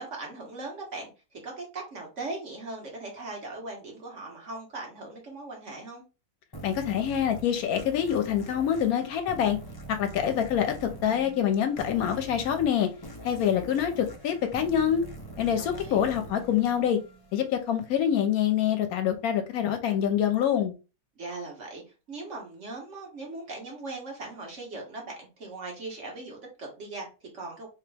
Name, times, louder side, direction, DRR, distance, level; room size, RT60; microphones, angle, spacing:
voice 1, 0.0-6.0 15.5-16.1 21.1-21.8 22.1-27.7, right 2 dB, 55° right, 1.4 m, -39 dB
sound 1, 6.5-17.7, right 2 dB, 25° left, 0.5 m, -43 dB
voice 2, 6.6-9.6 9.9-12.9 13.2-15.0 15.4-17.0 17.3-20.7, left 9 dB, 80° left, 1.0 m, -26 dB
3.2 x 2.9 x 3.3 m
omnidirectional pair, 1.5 m